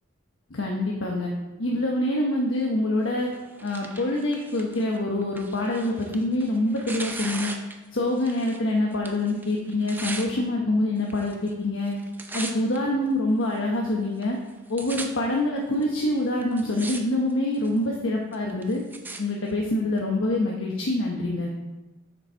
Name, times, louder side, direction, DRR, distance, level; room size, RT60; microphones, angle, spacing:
voice 1, 0.5-1.3 1.6-3.3 3.6-7.5 7.9-12.0 12.3-14.4 14.7-18.8 19.2-21.5, left 1 dB, 80° left, -1 dB, 1.0 m, -25 dB
Tearing, 3.2-8.7 8.9-10.3 11.0-11.5 11.8-12.8 13.4-13.5 14.2-14.3 14.5-15.1 15.8-15.9 16.4-17.0 17.3-17.8 18.3-19.2 20.0-20.1, right 2 dB, 10° right, 0.5 m, -38 dB
7.2 x 6.3 x 4.4 m, 1.1 s
head